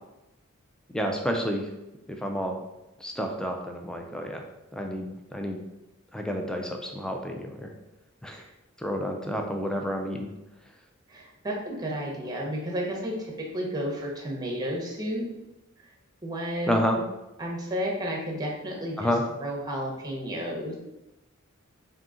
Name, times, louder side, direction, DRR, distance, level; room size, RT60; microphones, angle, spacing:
voice 1, 0.9-1.7 2.2-2.6 3.0-4.4 4.7-5.6 6.1-7.7 8.2-8.4 8.8-10.3 16.7-17.0 19.0-19.2, equal, 5° left, 3 dB, 0.3 m, -29 dB
voice 2, 11.1-15.3 16.2-17.0 17.4-19.1 19.4-20.8, equal, 20° right, -1 dB, 0.7 m, -32 dB
3.7 x 2.7 x 3.7 m, 0.96 s
head